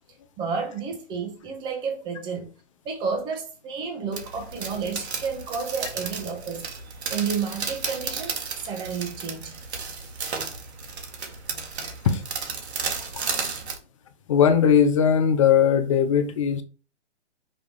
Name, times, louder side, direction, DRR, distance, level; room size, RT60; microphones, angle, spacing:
voice 1, 0.4-2.5 2.8-9.6, right 5 dB, 15° right, 1.3 m, -31 dB
sound 1, 4.1-13.8, right 5 dB, 65° right, 1.9 m, -33 dB
voice 2, 14.3-16.6, left 7 dB, 30° left, 0.8 m, -19 dB
5.7 x 4.8 x 5.0 m
hypercardioid pair, 155°, 35 cm